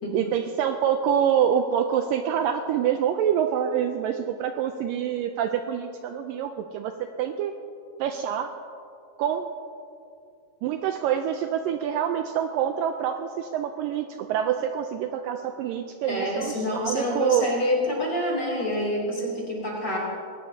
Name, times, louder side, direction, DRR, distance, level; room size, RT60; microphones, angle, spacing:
voice 1, 0.1-6.9 7.2-7.5 8.0-8.5 9.2-9.5 10.6-17.5, right 9 dB, 80° right, 6 dB, 2.0 m, -26 dB
voice 2, 16.1-20.0, left 1 dB, 30° left, -4 dB, 2.9 m, -27 dB
20.0 x 18.0 x 2.7 m, 2.5 s
omnidirectional pair, 4.3 m